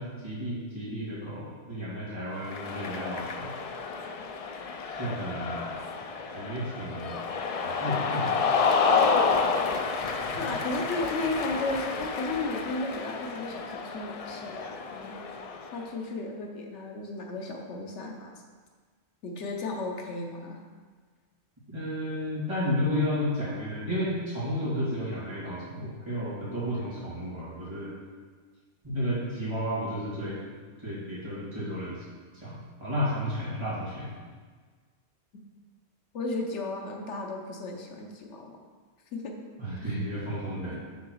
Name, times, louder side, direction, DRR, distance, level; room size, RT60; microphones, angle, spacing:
voice 1, 0.0-3.5 5.0-5.8 6.3-7.1 7.6-8.4 10.3-10.5 21.7-27.9 28.8-30.4 30.8-32.0 32.3-34.1 39.6-40.8, equal, 25° right, -9 dB, 2.4 m, -32 dB
Cheering, 2.4-15.9, left 5 dB, 60° left, 0.3 m, -30 dB
voice 2, 10.4-15.2 15.7-18.3 19.2-20.6 35.3-35.4 36.1-38.6 39.1-39.3 39.8-40.0 40.7-40.9, left 2 dB, 85° left, 2 dB, 1.2 m, -34 dB
6.6 x 3.8 x 6.3 m, 1.5 s
omnidirectional pair, 1.2 m